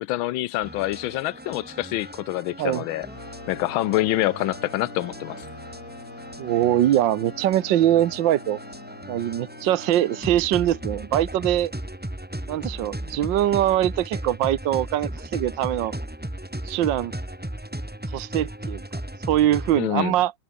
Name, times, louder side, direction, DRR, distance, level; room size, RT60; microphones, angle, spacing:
voice 1, 0.0-3.1 3.5-5.4 19.8-20.2, left 16 dB, 80° left, 1.4 m, -26 dB
atrap par le col, 0.6-19.8, right 1 dB, 5° right, 1.8 m, -36 dB
sound 1, 3.0-11.5, left 3 dB, 45° left, 4.9 m, -43 dB
voice 2, 6.4-8.6 9.1-11.7 12.5-15.9 16.6-17.1 18.1-18.8 19.3-20.3, right 12 dB, 70° right, 1.5 m, -22 dB
omnidirectional pair, 2.3 m